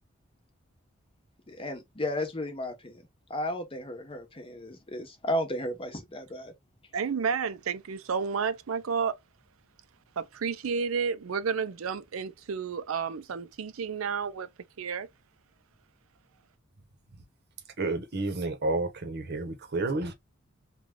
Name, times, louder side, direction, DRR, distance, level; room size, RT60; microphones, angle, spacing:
voice 1, 1.5-3.0 3.3-6.5, left 1 dB, 25° left, 0.9 m, -34 dB
voice 2, 6.9-9.1 10.2-14.5 14.8-15.1, right 6 dB, 85° right, 0.5 m, -31 dB
voice 3, 17.8-20.1, right 2 dB, 55° right, 0.8 m, -30 dB
3.3 x 2.3 x 3.6 m
head